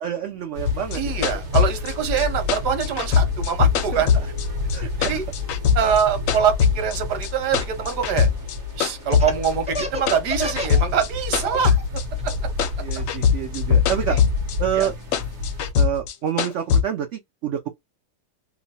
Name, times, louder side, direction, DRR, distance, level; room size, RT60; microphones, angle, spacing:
voice 1, 0.0-1.1 3.9-4.0 4.7-5.2 12.8-14.2 14.6-14.9 15.8-17.7, right 9 dB, 70° right, 0.7 m, -27 dB
sound 1, 0.5-15.7, left 3 dB, 50° right, 1.3 m, -30 dB
sound 2, 0.7-4.8 5.0-7.0 7.2-8.6 8.8-12.3 12.6-14.6 14.8-16.8, left 7 dB, 70° left, 0.9 m, -21 dB
voice 2, 0.9-4.1 5.0-5.2 5.7-8.3 8.8-11.8 12.2-12.3 14.1-14.2 14.7-14.9, right 7 dB, 90° right, 1.4 m, -24 dB
Laughter, 9.1-10.8 11.1-11.8 12.2-13.9, left 1 dB, 10° right, 0.3 m, -31 dB
3.0 x 2.2 x 2.7 m
omnidirectional pair, 1.7 m